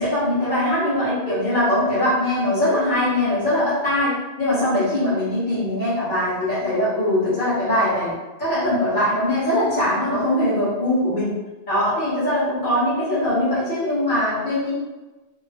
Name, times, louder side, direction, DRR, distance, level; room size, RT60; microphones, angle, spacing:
voice 1, 0.0-8.1 8.4-11.3 11.7-14.7, left 1 dB, 45° left, -10 dB, 1.3 m, -21 dB
2.9 x 2.1 x 2.7 m, 1.2 s
omnidirectional pair, 1.2 m